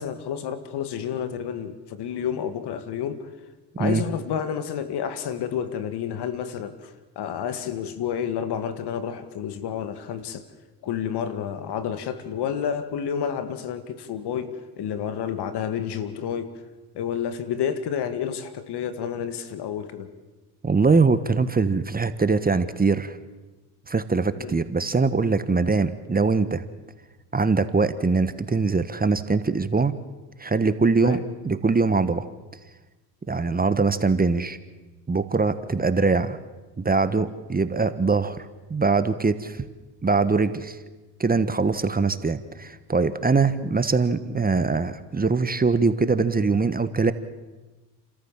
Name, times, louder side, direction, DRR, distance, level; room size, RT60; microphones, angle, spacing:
voice 1, 0.0-3.3 3.8-10.4 10.8-16.5 16.9-20.1 24.4-24.6 30.9-31.2, left 8 dB, 65° left, 11 dB, 2.1 m, -30 dB
voice 2, 20.6-23.2 23.9-26.6 27.3-30.0 30.4-32.3 33.3-34.6 35.1-36.4 36.8-38.4 38.7-39.7 40.0-40.8 41.2-47.1, right 4 dB, 20° right, 12 dB, 1.3 m, -22 dB
30.0 x 14.0 x 7.4 m, 1.2 s
supercardioid pair, 75°, 43 cm